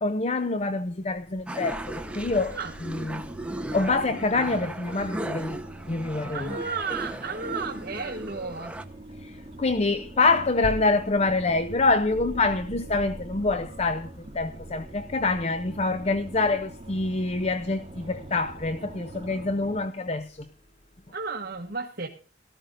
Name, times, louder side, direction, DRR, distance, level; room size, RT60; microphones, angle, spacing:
voice 1, 0.0-2.6 3.1-3.3 3.7-5.6 5.9-6.6 9.2-14.1 14.3-20.5, left 3 dB, 35° left, 0.6 m, -26 dB
sound 1, 1.5-8.8, right 1 dB, 5° right, 0.9 m, -37 dB
sound 2, 1.7-19.8, right 1 dB, 30° right, 2.4 m, -43 dB
voice 2, 6.3-8.7 21.1-22.1, right 4 dB, 50° right, 1.2 m, -33 dB
18.0 x 13.5 x 2.6 m
head